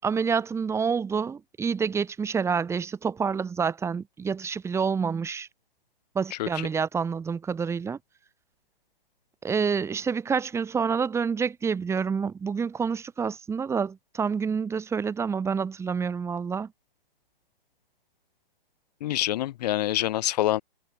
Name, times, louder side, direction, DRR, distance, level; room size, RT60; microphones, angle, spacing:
voice 1, 0.0-5.5 6.2-8.0 9.4-16.7, right 6 dB, 10° right, 6.9 m, -28 dB
voice 2, 19.0-20.6, left 14 dB, 45° left, 7.4 m, -26 dB
hypercardioid pair, 150°, 30 cm